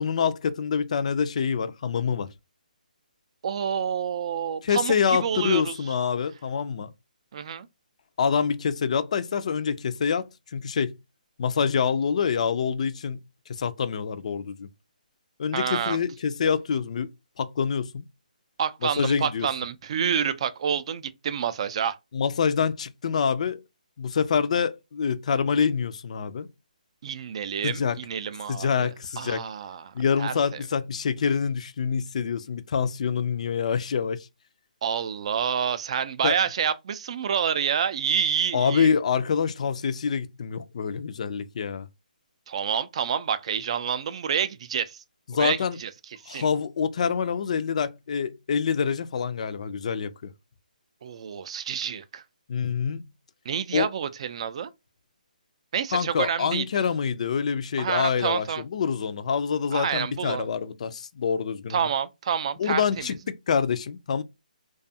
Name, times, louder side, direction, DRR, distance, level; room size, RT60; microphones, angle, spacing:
voice 1, 0.0-2.3 4.6-6.9 8.2-10.9 11.4-13.2 13.5-14.7 15.4-17.1 17.4-18.1 19.0-19.5 22.1-23.6 24.0-26.5 27.6-28.0 28.5-29.4 29.9-34.3 36.2-36.4 38.5-41.9 45.3-45.8 46.3-50.3 52.5-53.0 53.7-53.9 55.9-61.9 62.6-64.2, left 6 dB, 50° left, 0.3 m, -26 dB
voice 2, 3.4-5.7 7.3-7.7 15.5-16.0 18.6-22.0 27.0-28.9 29.2-30.6 34.8-38.9 42.5-45.0 45.4-45.9 46.3-46.5 51.0-52.2 53.5-54.7 55.7-56.6 57.8-58.6 59.7-60.5 61.7-63.1, right 7 dB, 45° right, 0.3 m, -28 dB
2.5 x 2.3 x 2.6 m
hypercardioid pair, 150°, 5 cm